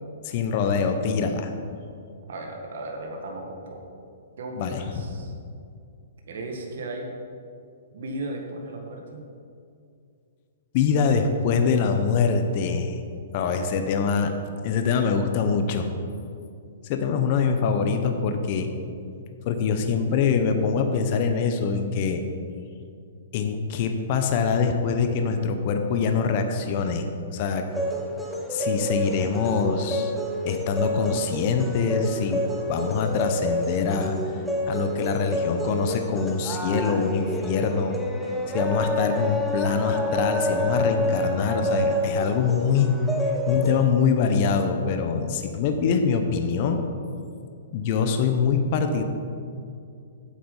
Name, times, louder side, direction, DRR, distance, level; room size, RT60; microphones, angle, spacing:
voice 1, 0.2-1.5 4.6-5.1 10.7-13.0 13.3-14.3 14.6-15.9 16.8-18.7 19.5-22.2 23.3-27.7 28.5-30.1 30.4-34.1 34.7-38.0 38.5-43.0 43.2-46.8 47.7-49.0, left 5 dB, 40° left, 6 dB, 0.8 m, -24 dB
voice 2, 2.3-3.8 4.4-5.3 6.3-7.1 7.9-9.2, right 2 dB, 70° right, 1 dB, 1.7 m, -35 dB
sound 1, 27.7-43.8, equal, ahead, 0.8 m, -28 dB
8.4 x 7.9 x 5.5 m, 2.4 s
hypercardioid pair, 155°, 0 cm